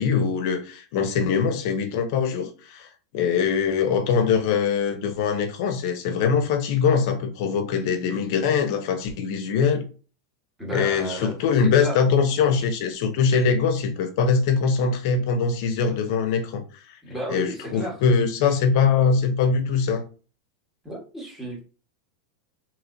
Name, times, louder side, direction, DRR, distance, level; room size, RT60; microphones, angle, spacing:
voice 1, 0.0-2.9 3.1-9.8 10.7-16.6 16.9-17.0 17.3-20.0, left 6 dB, 60° left, 0.5 m, -22 dB
voice 2, 10.6-12.0 17.0-18.0 20.8-21.6, equal, 5° right, 1.2 m, -33 dB
3.1 x 2.8 x 2.6 m
supercardioid pair, 145°, 2 cm